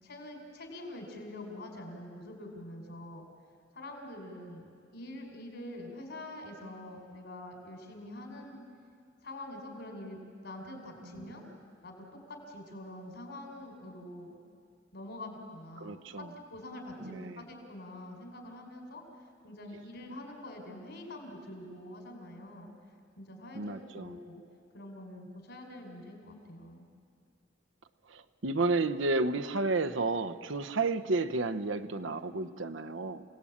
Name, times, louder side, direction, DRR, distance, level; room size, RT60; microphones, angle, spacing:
voice 1, 0.0-3.3 3.7-8.6 9.2-10.2 10.4-11.4 11.8-14.4 14.9-22.7 23.2-24.4 24.7-26.9, left 1 dB, 65° left, 2 dB, 4.9 m, -45 dB
voice 2, 11.0-11.3 15.8-16.3 17.0-17.4 23.5-24.2 28.1-33.2, right 3 dB, 75° right, 11 dB, 1.0 m, -32 dB
28.5 x 18.5 x 8.7 m, 2.2 s
head